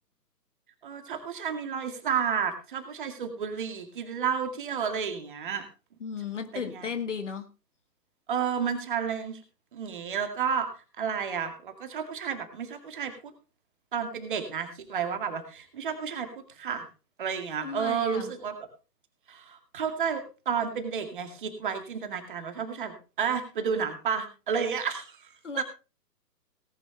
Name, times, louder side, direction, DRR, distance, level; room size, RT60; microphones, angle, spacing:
voice 1, 0.8-5.7 6.5-6.9 8.3-9.4 9.7-10.7 11.0-13.3 13.9-16.9 17.2-18.5 19.3-25.6, right 7 dB, 30° right, 7 dB, 2.2 m, -31 dB
voice 2, 6.0-7.5 17.6-18.3 25.4-25.6, left 6 dB, 45° left, 9 dB, 1.7 m, -35 dB
18.0 x 10.5 x 3.3 m, 0.32 s
figure-of-eight pair, 140°, 50 cm